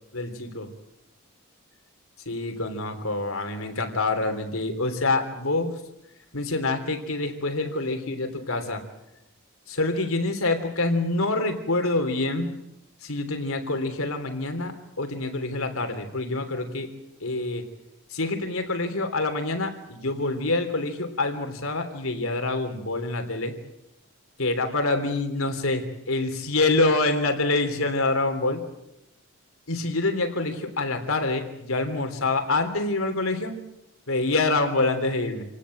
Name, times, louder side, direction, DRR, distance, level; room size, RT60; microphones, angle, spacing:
voice 1, 0.1-0.7 2.3-5.7 6.3-8.8 9.7-12.5 13.0-16.9 17.2-17.6 18.1-23.5 24.4-28.6 29.7-33.6 34.1-35.4, left 2 dB, 85° left, 7 dB, 3.4 m, -26 dB
27.5 x 18.5 x 7.8 m, 0.87 s
head